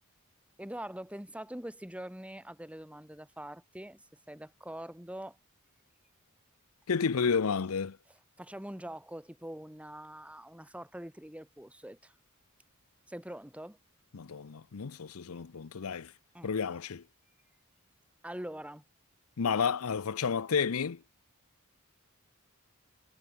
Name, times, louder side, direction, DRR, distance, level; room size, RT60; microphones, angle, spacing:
voice 1, 0.6-5.4 8.4-12.1 13.1-13.8 16.3-16.5 18.2-18.8, right 1 dB, 5° right, 2.9 m, -44 dB
voice 2, 6.9-8.0 14.1-16.1 16.4-17.0 19.4-21.0, left 6 dB, 75° left, 0.6 m, -31 dB
head